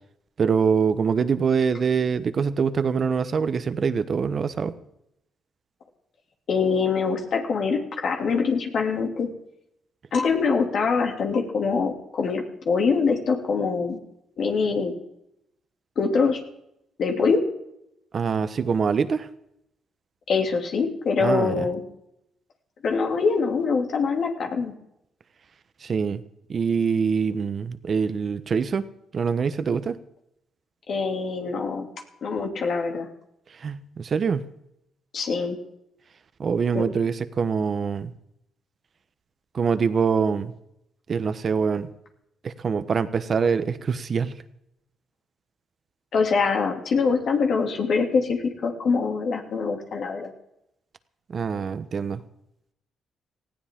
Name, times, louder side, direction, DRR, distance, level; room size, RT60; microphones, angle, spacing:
voice 1, 0.4-4.7 18.1-19.3 21.2-21.7 25.8-26.2 26.5-28.9 29.1-30.0 33.6-34.4 36.4-38.1 39.5-40.5 41.1-41.9 42.4-44.3 51.3-52.2, right 6 dB, 45° right, 12 dB, 1.2 m, -24 dB
voice 2, 6.5-9.3 10.1-14.0 14.4-14.9 16.0-16.4 17.0-17.4 20.3-21.8 22.8-24.7 30.9-31.9 32.2-33.1 35.1-35.6 36.7-36.8 46.1-50.3, left 5 dB, 60° left, 2 dB, 2.8 m, -24 dB
19.0 x 15.5 x 3.7 m, 0.78 s
cardioid pair, 90°, 0 cm